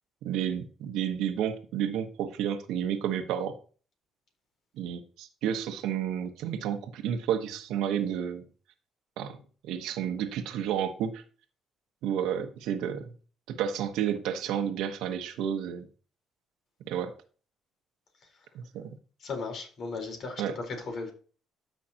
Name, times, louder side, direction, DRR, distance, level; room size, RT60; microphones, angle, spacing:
voice 1, 0.2-3.6 4.8-8.4 9.2-11.2 12.0-13.1 13.5-15.9 16.9-17.1 18.7-18.9 20.4-20.5, right 9 dB, 80° right, 1.2 m, -31 dB
voice 2, 19.2-21.1, left 4 dB, 60° left, 4.1 m, -36 dB
13.0 x 5.8 x 2.9 m
cardioid pair, 80°, 0 cm